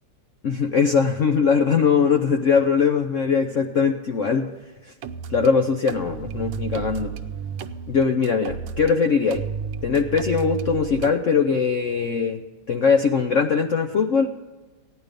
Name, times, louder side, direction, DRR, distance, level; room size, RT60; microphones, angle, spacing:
voice 1, 0.4-4.5 5.3-7.1 7.9-9.4 9.8-12.4 12.7-14.3, left 5 dB, 75° left, 5 dB, 0.7 m, -21 dB
sound 1, 5.0-5.5 5.9-8.9 9.3-11.1, right 7 dB, 85° right, 1.5 m, -32 dB
15.0 x 10.5 x 5.2 m, 1.2 s
omnidirectional pair, 2.1 m